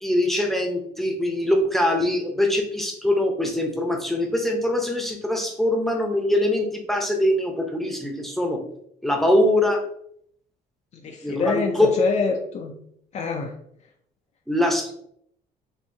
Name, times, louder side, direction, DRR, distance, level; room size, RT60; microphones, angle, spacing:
voice 1, 0.0-8.6 9.0-9.8 11.2-12.0 14.5-14.9, left 1 dB, ahead, 2 dB, 0.7 m, -23 dB
voice 2, 10.9-12.8 13.1-13.5, left 4 dB, 45° left, 2 dB, 0.4 m, -26 dB
4.4 x 2.7 x 2.7 m, 0.69 s
cardioid pair, 110°, 17 cm